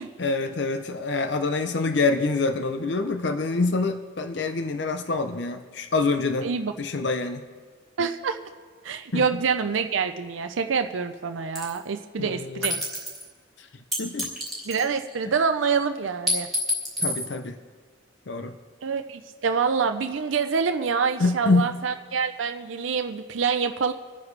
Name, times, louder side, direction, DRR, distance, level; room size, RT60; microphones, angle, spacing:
voice 1, 0.2-6.5 6.8-7.4 9.1-9.4 12.2-12.7 13.6-13.7 14.0-14.3 17.0-17.6 18.3-18.5 21.2-21.7, left 3 dB, 65° left, 7 dB, 0.7 m, -26 dB
voice 2, 6.4-6.7 8.0-8.4 8.8-12.8 14.7-16.5 18.8-23.9, right 5 dB, 85° right, 7 dB, 0.5 m, -26 dB
sound 1, 11.6-11.8 12.6-13.2 13.9-15.1 16.3-17.3, left 1 dB, ahead, 3.1 m, -28 dB
26.5 x 9.7 x 3.3 m, 1.5 s
head